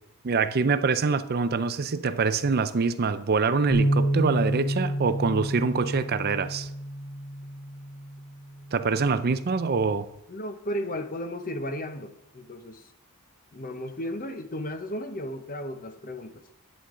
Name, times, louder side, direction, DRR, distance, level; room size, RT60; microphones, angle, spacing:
voice 1, 0.2-6.7 8.7-10.1, right 4 dB, 45° right, 0.5 m, -25 dB
Bass guitar, 3.7-10.0, right 1 dB, 70° left, 2.7 m, -30 dB
voice 2, 10.3-12.9 13.5-16.4, equal, 40° left, 0.9 m, -34 dB
11.0 x 8.9 x 3.8 m
head